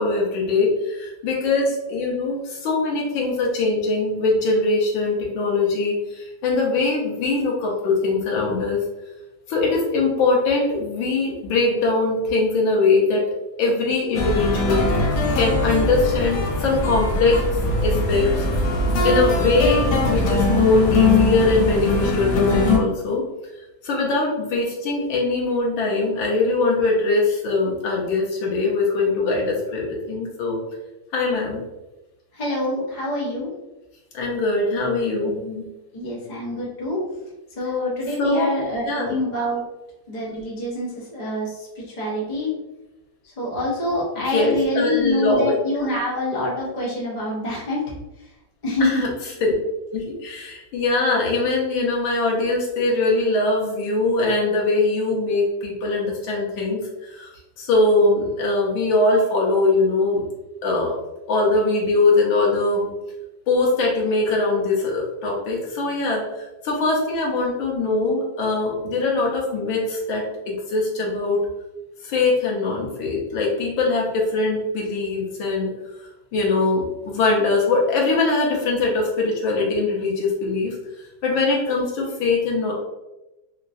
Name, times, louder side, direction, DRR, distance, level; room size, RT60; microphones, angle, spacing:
voice 1, 0.0-8.8 9.5-13.2 13.6-14.9 15.3-17.4 17.8-18.5 19.0-23.2 23.8-30.6 31.1-31.6 34.1-35.6 38.2-38.5 38.8-39.1 44.3-45.5 48.8-49.1 49.4-49.5 49.9-57.3 57.6-60.2 60.6-60.9 61.3-62.9 63.5-71.4 72.0-75.7 76.3-80.7 81.2-82.7, left 3 dB, 90° left, -2 dB, 1.6 m, -22 dB
sound 1, 14.1-22.8, left 2 dB, 65° left, 0.9 m, -21 dB
voice 2, 32.3-33.5 35.9-37.0 37.6-39.6 40.1-42.6 43.2-48.3 48.6-49.0, left 1 dB, 30° left, -5 dB, 0.8 m, -26 dB
3.8 x 3.0 x 2.6 m, 1.0 s
omnidirectional pair, 2.1 m